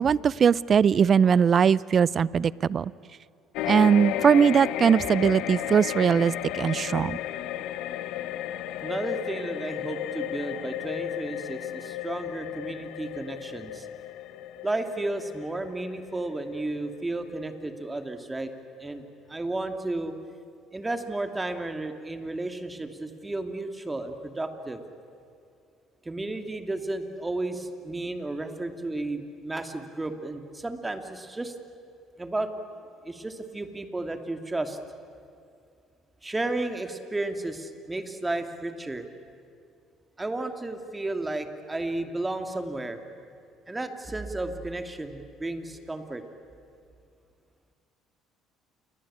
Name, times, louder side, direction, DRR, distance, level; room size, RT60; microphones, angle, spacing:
voice 1, 0.0-2.9 3.7-7.2, right 7 dB, 45° right, 21 dB, 0.6 m, -21 dB
sound 1, 3.5-18.1 18.5-18.7, left 12 dB, 75° left, 1.1 m, -34 dB
voice 2, 8.8-13.9 14.6-18.5 18.8-19.0 19.3-20.2 20.7-24.8 26.0-31.5 32.2-32.5 33.0-34.8 36.2-39.1 40.2-43.0 43.7-46.2, right 2 dB, 15° right, 6 dB, 2.5 m, -33 dB
28.0 x 22.5 x 8.8 m, 2.3 s
supercardioid pair, 85°, 0 cm